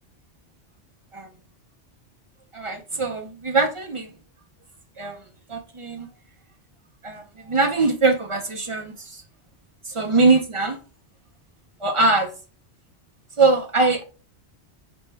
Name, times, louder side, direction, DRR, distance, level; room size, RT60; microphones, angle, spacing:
voice 1, 2.5-4.1 5.0-5.2 5.5-6.1 7.0-9.1 9.8-10.8 11.8-12.3 13.4-14.0, right 3 dB, 50° right, 0.3 m, -22 dB
5.1 x 2.1 x 4.4 m
omnidirectional pair, 1.1 m